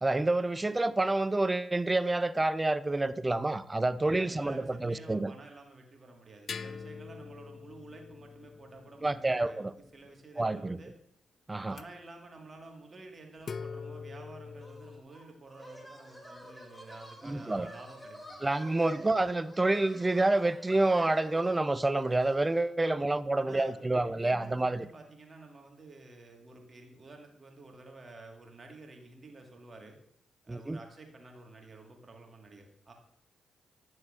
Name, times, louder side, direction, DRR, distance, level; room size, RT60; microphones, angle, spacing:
voice 1, 0.0-5.3 9.0-9.7 10.4-10.8 11.5-11.8 17.2-17.7 18.4-24.9 30.5-30.8, right 2 dB, 25° right, 15 dB, 0.4 m, -28 dB
voice 2, 4.0-9.6 9.9-10.9 11.7-18.4 22.8-23.1 23.4-30.0 30.4-32.9, right 2 dB, 40° right, 2 dB, 1.5 m, -51 dB
sound 1, 6.5-10.2 11.7-11.8 13.4-15.0, left 5 dB, 55° left, 0.3 m, -45 dB
sound 2, 14.6-22.7, equal, 10° left, 2.3 m, -50 dB
9.4 x 6.3 x 2.4 m, 0.71 s
hypercardioid pair, 40°, 0 cm